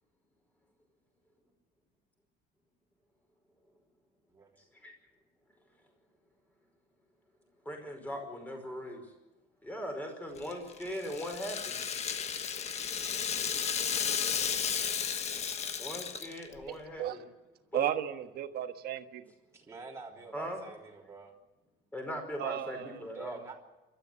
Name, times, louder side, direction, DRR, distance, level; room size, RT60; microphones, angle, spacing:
voice 1, 7.6-9.1 9.6-11.8 15.8-17.2 17.7-17.8 20.3-20.6 21.9-23.4, equal, 10° left, 3 dB, 5.1 m, -39 dB
Rattle (instrument), 10.4-16.6, left 7 dB, 35° left, 1.3 m, -33 dB
voice 2, 16.7-17.2 17.7-19.2 22.4-23.0, right 11 dB, 50° right, 8 dB, 1.5 m, -35 dB
voice 3, 19.5-21.3 23.1-23.5, right 4 dB, 15° right, -1 dB, 3.5 m, -47 dB
28.5 x 13.0 x 8.3 m, 1.1 s
cardioid pair, 175°, 20 cm